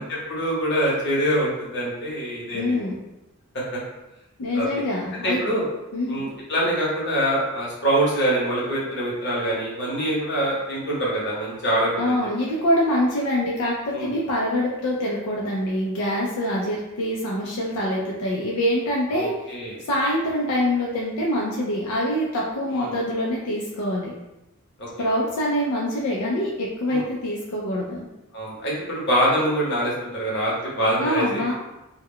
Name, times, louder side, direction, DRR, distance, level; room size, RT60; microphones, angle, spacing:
voice 1, 0.0-2.9 4.5-4.7 5.2-5.6 6.1-12.2 13.9-14.1 19.1-19.8 22.7-22.9 24.8-25.1 26.9-27.0 28.3-31.5, right 1 dB, 50° left, -5 dB, 0.9 m, -24 dB
voice 2, 2.5-3.0 4.4-5.4 5.9-6.2 12.0-19.3 19.9-24.1 25.0-28.1 31.0-31.5, left 1 dB, 85° left, -3 dB, 0.4 m, -25 dB
2.2 x 2.1 x 3.5 m, 0.96 s
head